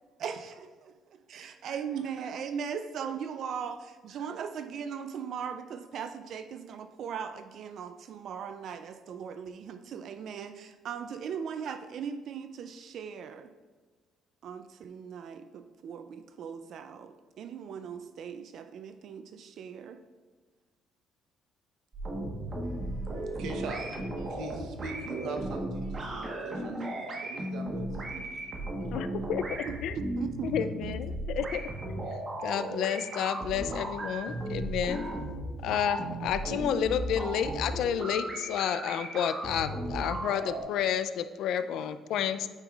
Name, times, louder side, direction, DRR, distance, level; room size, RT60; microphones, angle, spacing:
voice 1, 0.2-13.5 14.4-20.0 29.7-29.8 30.2-30.9, right 7 dB, 60° right, 9 dB, 0.3 m, -39 dB
sound 1, 21.9-40.6, right 1 dB, 35° right, 1.1 m, -36 dB
voice 2, 22.6-28.4 28.8-28.9, right 3 dB, 75° right, 4 dB, 0.8 m, -42 dB
voice 3, 28.9-29.4 29.8-30.0 30.4-31.6 32.4-35.1 35.6-42.5, left 9 dB, 70° left, 12 dB, 0.3 m, -30 dB
8.8 x 5.4 x 2.4 m, 1.4 s
cardioid pair, 125°, 0 cm